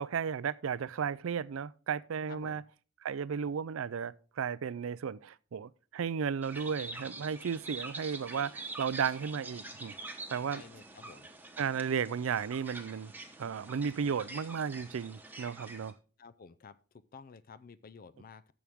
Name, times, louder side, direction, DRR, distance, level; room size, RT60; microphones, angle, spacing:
voice 1, 0.0-2.6 3.0-9.9 10.3-10.6 11.6-13.1 13.4-15.9, right 6 dB, 90° right, 0.4 m, -34 dB
voice 2, 2.3-2.6 10.5-11.3 16.2-16.8 17.1-18.5, left 5 dB, 45° left, 0.4 m, -52 dB
sound 1, 6.4-15.9, right 2 dB, 10° right, 1.1 m, -46 dB
14.0 x 6.1 x 3.6 m
head